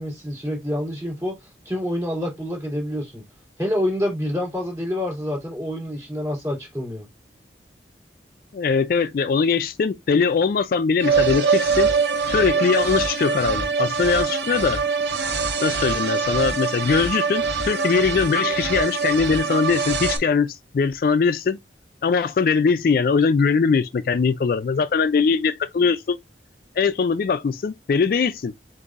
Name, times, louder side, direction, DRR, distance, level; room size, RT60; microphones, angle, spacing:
voice 1, 0.0-3.2 3.6-7.1, left 1 dB, 20° right, 2.8 m, -27 dB
voice 2, 8.5-12.0 12.3-14.8 15.6-21.6 22.0-26.2 26.8-28.5, left 5 dB, 55° left, 0.3 m, -21 dB
sound 1, 11.0-20.2, right 5 dB, 75° right, 0.9 m, -23 dB
7.8 x 2.6 x 2.4 m
head